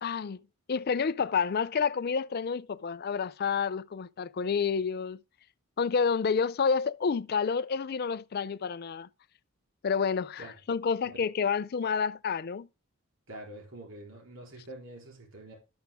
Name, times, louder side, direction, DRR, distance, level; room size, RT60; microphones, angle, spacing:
voice 1, 0.0-0.4 0.7-5.2 5.8-9.1 9.8-10.4 10.7-12.7, left 6 dB, 45° left, 0.4 m, -29 dB
voice 2, 13.3-15.5, right 1 dB, 65° right, 3.9 m, -46 dB
12.5 x 6.7 x 3.5 m
head